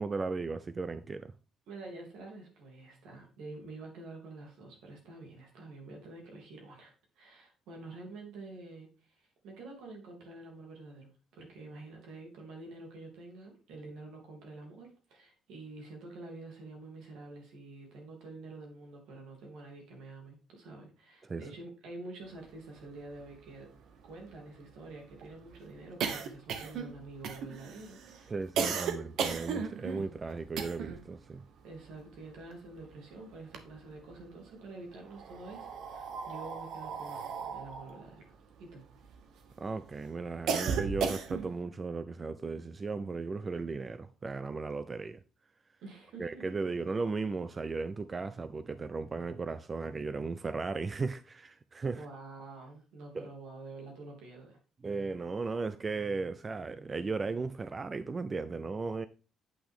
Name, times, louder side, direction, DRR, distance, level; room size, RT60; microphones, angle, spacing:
voice 1, 0.0-1.3 21.2-21.4 28.3-31.4 39.6-45.2 46.2-52.1 53.1-53.3 54.8-59.1, right 4 dB, 20° right, 0.3 m, -36 dB
voice 2, 1.7-23.7 24.0-29.1 31.6-38.8 45.8-46.4 51.9-54.6, right 2 dB, 75° right, 3.0 m, -48 dB
sound 1, 22.9-23.0 23.2-23.3 23.6-31.1 31.4-32.9 33.3-34.2 35.0-39.5 39.9-41.6, right 6 dB, 55° right, 1.0 m, -36 dB
8.3 x 5.9 x 3.7 m
cardioid pair, 175°, 0 cm